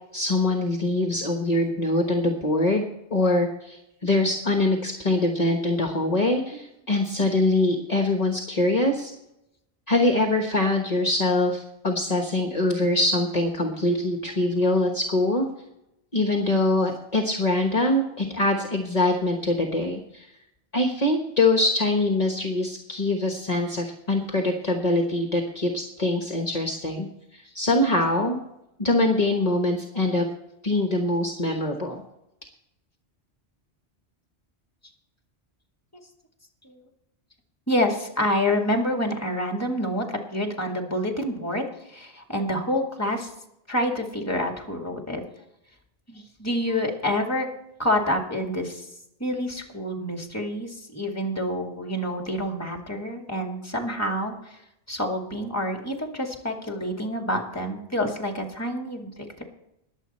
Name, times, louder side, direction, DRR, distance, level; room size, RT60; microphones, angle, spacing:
voice 1, 0.1-9.1 9.9-15.4 16.1-20.3 20.7-27.1 27.3-28.4 28.8-30.2 30.6-32.0, left 2 dB, 35° left, 3 dB, 1.4 m, -23 dB
voice 2, 37.7-43.3 43.7-45.2 46.1-47.5 47.8-48.9 49.2-54.6 54.9-59.4, left 1 dB, 15° left, 2 dB, 2.2 m, -27 dB
21.0 x 7.7 x 4.3 m, 0.83 s
omnidirectional pair, 1.2 m